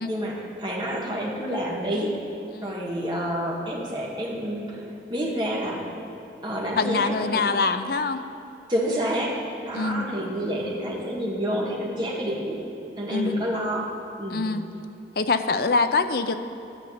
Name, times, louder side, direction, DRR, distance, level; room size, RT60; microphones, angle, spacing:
voice 1, 0.1-2.4 2.6-5.8 6.4-7.4 8.7-12.6 13.0-13.9 14.2-14.5, equal, 25° right, -3 dB, 1.7 m, -28 dB
voice 2, 6.8-8.2 9.7-10.1 13.1-13.4 14.3-14.6 15.2-16.3, left 4 dB, 55° left, 10 dB, 0.5 m, -24 dB
12.5 x 5.1 x 8.5 m, 2.8 s
head